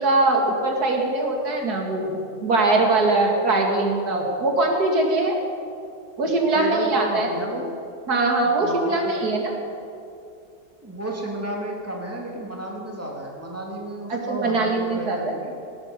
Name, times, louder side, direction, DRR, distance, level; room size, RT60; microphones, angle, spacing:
voice 1, 0.0-5.4 6.2-7.3 8.1-9.5 14.1-15.3, right 2 dB, 65° right, 1 dB, 2.5 m, -22 dB
voice 2, 6.5-7.7 8.4-9.3 10.8-15.5, right 1 dB, 10° right, -2 dB, 2.4 m, -32 dB
17.5 x 12.5 x 5.2 m, 2.5 s
omnidirectional pair, 1.8 m